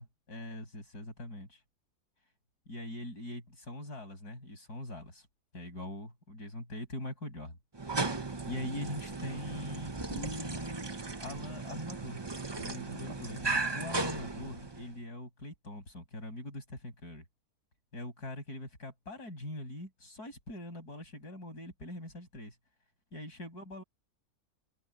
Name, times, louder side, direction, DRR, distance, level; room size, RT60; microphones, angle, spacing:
voice 1, 0.0-1.6 2.7-5.3 5.5-7.6 8.4-10.9 11.2-12.3 12.6-17.2 17.9-22.5 23.1-23.8, left 1 dB, 80° left, 8.5 m, -42 dB
sound 1, 7.7-14.9, right 3 dB, 20° right, 0.8 m, -36 dB
omnidirectional pair, 1.6 m